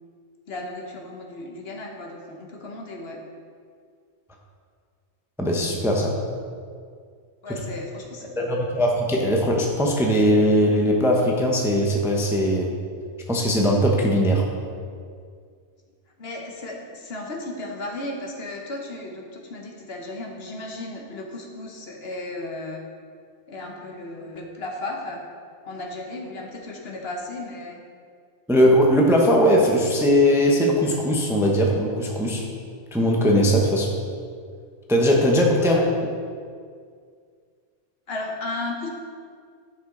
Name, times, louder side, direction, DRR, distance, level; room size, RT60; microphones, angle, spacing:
voice 1, 0.5-3.2 7.4-8.7 16.2-22.8 23.5-25.2 25.7-27.8 33.7-33.8 35.6-35.8 38.1-38.9, left 2 dB, 60° left, 0 dB, 1.2 m, -35 dB
voice 2, 5.4-6.1 7.5-7.6 8.4-12.7 13.3-14.5 28.5-32.4 32.9-33.9 34.9-35.8, equal, 5° right, -1 dB, 0.7 m, -20 dB
9.7 x 5.6 x 3.8 m, 2.1 s
omnidirectional pair, 1.2 m